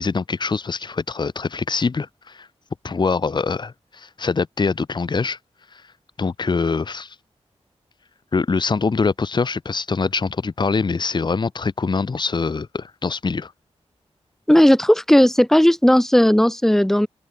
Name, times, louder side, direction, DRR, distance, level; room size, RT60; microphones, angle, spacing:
voice 1, 0.0-2.5 2.8-5.4 5.7-5.8 6.2-7.2 8.3-13.5, left 4 dB, 40° left, 0.7 m, -24 dB
voice 2, 14.5-17.1, equal, 5° left, 0.6 m, -15 dB
open air
wide cardioid pair, 70°, 11 cm